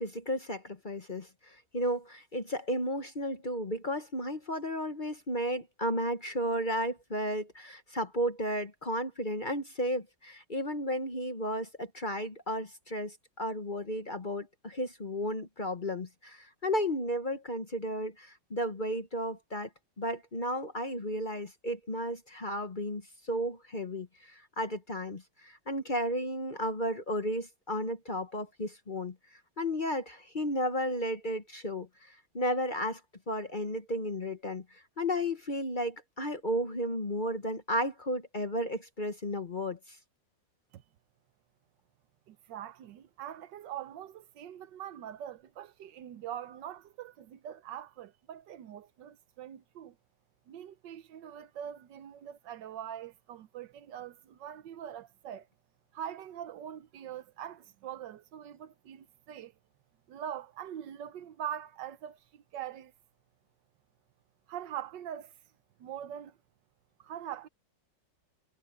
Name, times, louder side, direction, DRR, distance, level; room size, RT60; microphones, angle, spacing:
voice 1, 0.0-19.7 20.0-29.1 29.6-33.0 33.3-40.0, equal, 30° left, 1.2 m, -33 dB
voice 2, 42.3-50.0 50.5-55.5 55.9-59.5 60.1-62.9 64.5-65.3 65.8-66.4 67.0-67.5, right 10 dB, 75° right, 1.5 m, -43 dB
omnidirectional pair, 2.0 m